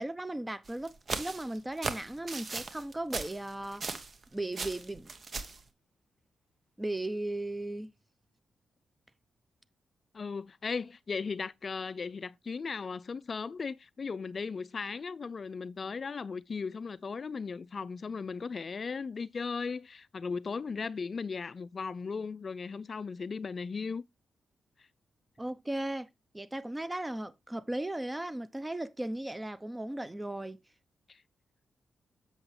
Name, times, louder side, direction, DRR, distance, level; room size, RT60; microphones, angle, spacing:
voice 1, 0.0-3.8 4.3-5.1 6.8-7.9 25.4-26.1 26.3-30.6, right 1 dB, 15° right, 0.8 m, -36 dB
sound 1, 0.6-4.2 4.5-5.6, right 4 dB, 50° right, 1.2 m, -38 dB
voice 2, 10.1-24.0 31.1-31.2, left 5 dB, 50° left, 0.4 m, -37 dB
7.8 x 6.3 x 3.3 m
supercardioid pair, 45°, 0 cm